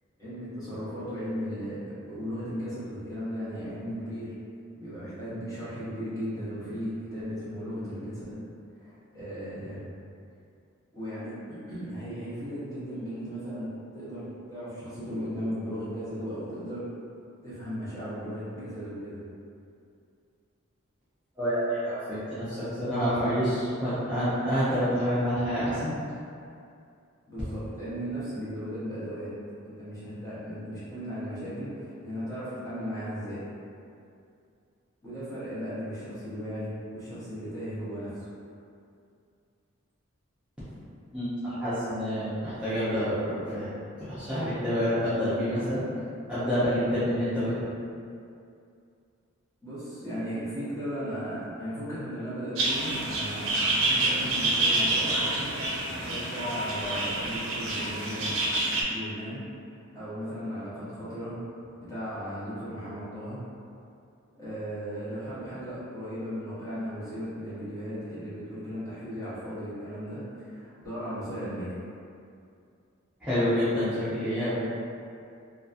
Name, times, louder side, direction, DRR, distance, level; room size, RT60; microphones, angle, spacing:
voice 1, 0.2-4.4 4.7-8.4 8.8-9.8 10.9-16.9 17.4-19.2 27.3-29.3 29.6-33.4 35.0-38.2 49.6-53.5 53.8-55.5 56.0-58.4 58.8-59.4 59.9-61.4 61.8-63.4 64.3-71.7, equal, 15° left, -13 dB, 0.9 m, -36 dB
voice 2, 21.4-25.9 41.1-43.7 44.0-45.8 46.3-47.5 73.2-74.6, equal, 5° right, -16 dB, 0.6 m, -28 dB
sound 1, 52.6-58.8, right 2 dB, 65° right, 0.5 m, -27 dB
2.7 x 2.3 x 2.4 m, 2.5 s
head